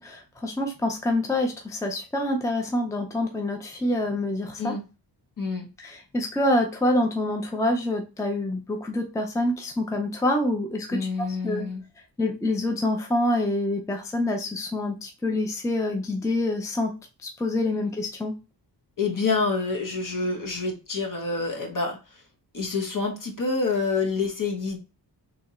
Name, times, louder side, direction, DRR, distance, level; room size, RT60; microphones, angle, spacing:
voice 1, 0.0-4.7 5.8-11.6 12.2-16.9 17.2-18.3, left 1 dB, 5° left, 3 dB, 0.5 m, -26 dB
voice 2, 10.9-11.8 19.0-22.2 22.5-24.8, left 4 dB, 50° left, 3 dB, 1.2 m, -27 dB
3.4 x 2.9 x 4.2 m, 0.30 s
wide cardioid pair, 120°, 43 cm